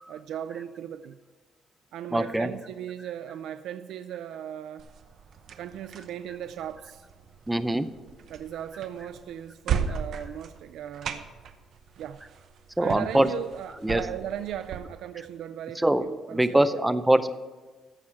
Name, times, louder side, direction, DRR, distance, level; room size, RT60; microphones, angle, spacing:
voice 1, 0.1-1.2 1.9-4.8 5.6-7.0 8.3-11.3 12.0-12.2 12.8-16.7, right 10 dB, 75° right, 10 dB, 0.4 m, -37 dB
voice 2, 2.1-2.5 7.5-7.9 12.8-13.3 13.8-14.0 15.8-16.0 16.3-17.3, right 1 dB, 5° right, 11 dB, 0.5 m, -23 dB
sound 1, 4.8-14.8, right 7 dB, 55° right, 0.8 m, -37 dB
14.0 x 4.8 x 7.5 m, 1.3 s
cardioid pair, 155°, 0 cm